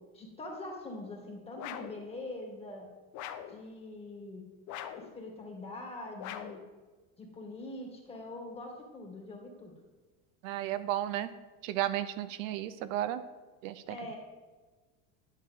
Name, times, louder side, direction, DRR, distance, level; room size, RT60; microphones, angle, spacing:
voice 1, 0.1-2.9 3.5-4.4 4.9-6.6 7.2-9.7 13.9-14.2, left 2 dB, 15° left, 0 dB, 1.9 m, -43 dB
sound 1, 1.6-2.0 3.1-3.6 4.7-5.1 6.2-6.7, left 10 dB, 45° left, 0.7 m, -42 dB
voice 2, 10.4-11.3 11.6-13.2 13.6-14.0, right 13 dB, 75° right, 12 dB, 0.6 m, -33 dB
11.0 x 6.6 x 3.7 m, 1.3 s
supercardioid pair, 135°, 39 cm